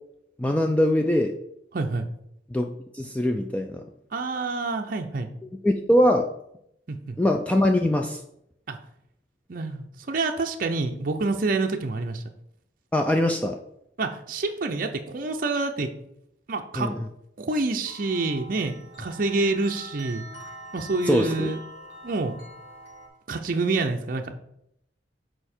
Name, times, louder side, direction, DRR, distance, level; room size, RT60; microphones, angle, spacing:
voice 1, 0.4-1.3 2.5-2.7 2.9-3.8 5.6-6.3 7.2-8.2 12.9-13.6 16.8-16.9 21.1-21.5, left 1 dB, 5° left, 3 dB, 0.3 m, -22 dB
voice 2, 1.7-2.1 4.1-5.3 6.9-7.2 8.7-8.8 9.5-12.2 14.0-15.9 16.5-16.9 17.4-20.3 20.7-21.6 22.0-22.3 23.3-24.3, right 3 dB, 50° right, 4 dB, 0.5 m, -27 dB
sound 1, 17.8-23.1, right 1 dB, 75° left, 2.6 m, -44 dB
6.9 x 4.5 x 4.3 m, 0.77 s
head